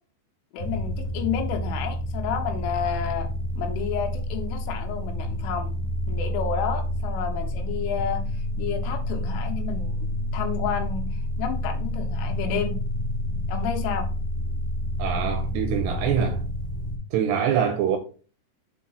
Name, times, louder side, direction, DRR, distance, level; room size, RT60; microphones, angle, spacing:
voice 1, 0.5-3.3 3.6-5.7 6.1-8.2 8.6-12.8 13.5-14.1, left 7 dB, 80° left, 3.6 m, -31 dB
sound 1, 0.6-17.0, left 1 dB, 50° left, 1.6 m, -29 dB
voice 2, 15.0-16.4 17.1-18.0, right 8 dB, 80° right, 2.5 m, -24 dB
7.4 x 4.7 x 4.1 m
omnidirectional pair, 5.6 m